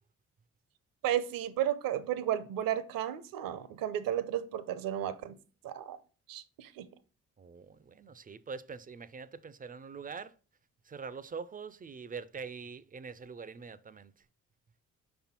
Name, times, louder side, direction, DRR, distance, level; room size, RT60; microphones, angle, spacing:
voice 1, 1.0-5.4 5.6-6.0 6.3-6.9, right 11 dB, 60° right, 0.7 m, -33 dB
voice 2, 7.4-10.3 10.9-14.1, right 5 dB, 25° right, 0.4 m, -44 dB
5.1 x 4.4 x 4.3 m
hypercardioid pair, 45°, 37 cm